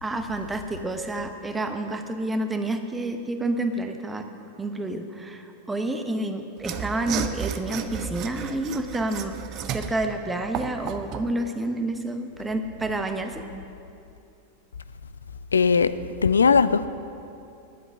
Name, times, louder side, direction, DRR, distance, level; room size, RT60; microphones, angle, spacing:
voice 1, 0.0-4.2 4.6-13.4, right 2 dB, 10° right, 6 dB, 0.9 m, -29 dB
Mechanisms / Sawing, 6.6-11.3, right 8 dB, 35° right, 0.6 m, -33 dB
voice 2, 15.5-16.9, left 5 dB, 75° left, 14 dB, 0.4 m, -19 dB
10.5 x 8.0 x 8.3 m, 2.6 s
figure-of-eight pair, 90°, 0 cm